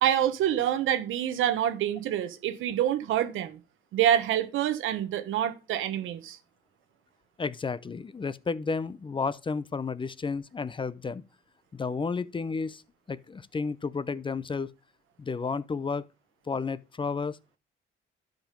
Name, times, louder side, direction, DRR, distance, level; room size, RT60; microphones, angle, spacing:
voice 1, 0.0-3.6 3.9-6.4, right 11 dB, 85° right, 1.1 m, -26 dB
voice 2, 7.4-11.2 11.7-12.8 13.1-14.7 15.2-16.1 16.5-17.6, left 4 dB, 25° left, 0.6 m, -32 dB
12.0 x 5.0 x 5.2 m
cardioid pair, 90°, 20 cm